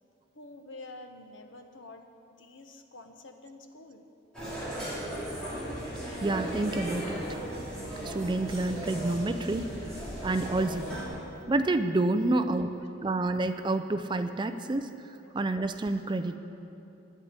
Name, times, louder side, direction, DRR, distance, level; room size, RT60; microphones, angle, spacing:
voice 1, 0.3-4.0 12.5-12.9 15.2-15.3, left 2 dB, 70° left, 5 dB, 1.0 m, -48 dB
sound 1, 4.3-11.1, right 1 dB, 5° left, 3.6 m, -36 dB
voice 2, 6.2-7.2 8.0-9.7 10.2-11.0 11.5-14.9 15.3-16.4, right 2 dB, 25° right, 9 dB, 0.4 m, -28 dB
10.5 x 8.3 x 9.6 m, 2.9 s
head